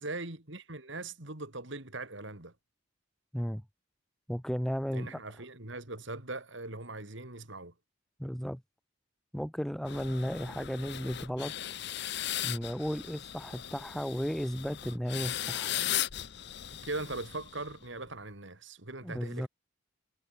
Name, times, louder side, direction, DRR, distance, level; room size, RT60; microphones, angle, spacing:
voice 1, 0.0-2.5 4.9-7.7 16.8-19.5, right 2 dB, 60° right, 3.0 m, -40 dB
voice 2, 4.3-5.2 8.2-8.6 9.3-11.5 12.4-15.7 19.0-19.5, equal, ahead, 1.0 m, -34 dB
sound 1, 9.9-17.8, left 12 dB, 55° left, 0.7 m, -37 dB
head